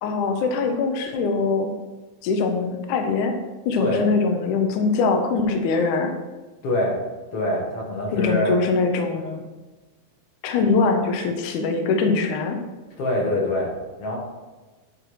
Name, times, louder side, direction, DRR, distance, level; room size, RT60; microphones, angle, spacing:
voice 1, 0.0-1.7 2.2-3.4 3.7-6.1 8.1-9.4 10.4-12.6, left 4 dB, 70° left, 4 dB, 2.0 m, -22 dB
voice 2, 6.6-7.0 7.3-8.6 13.0-14.2, left 1 dB, 50° left, -2 dB, 2.1 m, -24 dB
10.0 x 4.7 x 4.7 m, 1.2 s
omnidirectional pair, 4.5 m